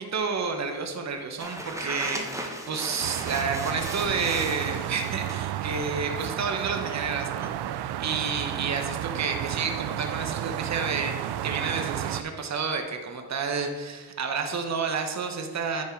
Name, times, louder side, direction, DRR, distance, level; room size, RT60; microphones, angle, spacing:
voice 1, 0.0-7.5 8.0-15.8, right 5 dB, 40° right, 5 dB, 1.0 m, -30 dB
sound 1, 1.4-4.6 5.0-5.5, right 1 dB, 5° right, 1.1 m, -36 dB
sound 2, 3.0-12.2, right 11 dB, 70° right, 0.5 m, -32 dB
10.5 x 4.4 x 4.5 m, 1.4 s
cardioid pair, 85°, 42 cm